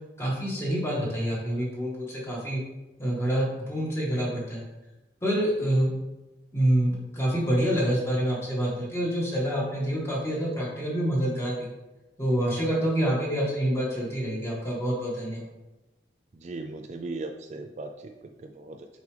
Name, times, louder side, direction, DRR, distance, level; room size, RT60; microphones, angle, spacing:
voice 1, 0.2-2.6 3.0-4.6 5.2-5.9 6.5-11.7 12.2-15.4, right 1 dB, 15° left, -4 dB, 1.6 m, -27 dB
voice 2, 16.3-19.0, right 2 dB, 40° right, 4 dB, 0.4 m, -38 dB
6.6 x 4.8 x 3.3 m, 1.0 s
head